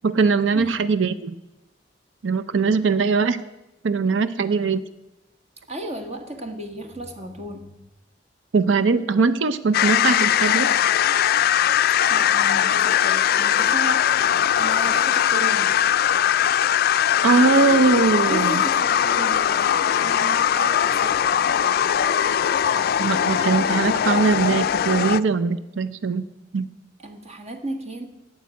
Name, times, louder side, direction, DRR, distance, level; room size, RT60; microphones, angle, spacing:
voice 1, 0.0-1.3 2.2-3.4 3.8-4.8 8.5-10.7 17.2-18.6 23.0-26.2 26.5-26.7, right 4 dB, 85° right, 13 dB, 0.5 m, -21 dB
voice 2, 5.7-7.7 12.1-14.1 14.6-15.8 18.2-21.4 27.0-28.1, right 2 dB, 35° right, 5 dB, 1.6 m, -34 dB
sound 1, 9.7-25.2, left 9 dB, 55° left, 0.4 m, -20 dB
12.0 x 8.9 x 8.3 m, 1.0 s
head